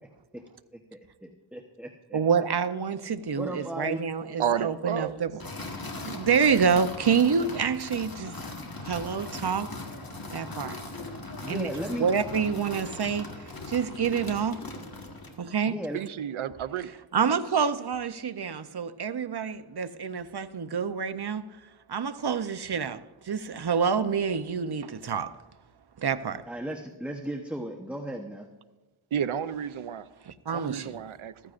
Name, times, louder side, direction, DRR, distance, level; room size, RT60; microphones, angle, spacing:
voice 1, 1.2-2.2 3.3-4.0 11.4-12.1 15.7-16.0 26.5-28.5, right 1 dB, 5° right, 1.0 m, -35 dB
voice 2, 2.1-5.3 6.0-8.4 8.8-9.7 10.3-10.8 11.5-11.7 12.0-14.6 15.4-15.7 17.1-21.5 21.9-25.3 26.0-26.5 30.3-31.0, right 6 dB, 55° right, 0.7 m, -27 dB
voice 3, 4.4-5.1 15.9-16.9 17.3-17.4 29.1-30.1 30.5-31.3, right 8 dB, 85° right, 0.6 m, -31 dB
sound 1, 5.4-15.4, left 2 dB, 45° left, 1.7 m, -39 dB
14.5 x 14.0 x 2.5 m
wide cardioid pair, 60°, 48 cm